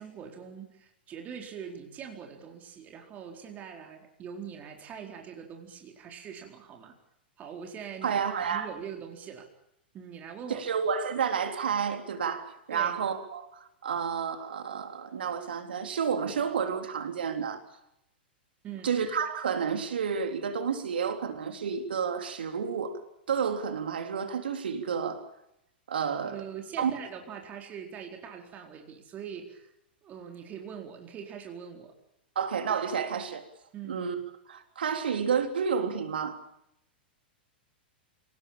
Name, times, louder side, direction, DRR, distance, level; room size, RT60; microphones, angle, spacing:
voice 1, 0.0-7.0 7.4-9.5 9.9-10.6 12.7-12.9 18.6-18.9 26.2-29.7 30.0-31.9 33.7-34.0, right 7 dB, 30° right, 2 dB, 4.4 m, -43 dB
voice 2, 8.0-8.7 10.5-13.5 13.8-17.6 18.8-22.9 23.3-25.3 25.9-26.4 26.8-26.9 32.4-33.4 33.9-34.2 34.5-36.4, right 6 dB, 70° right, 6 dB, 3.7 m, -30 dB
27.5 x 18.5 x 8.9 m, 0.79 s
figure-of-eight pair, 100°, 6 cm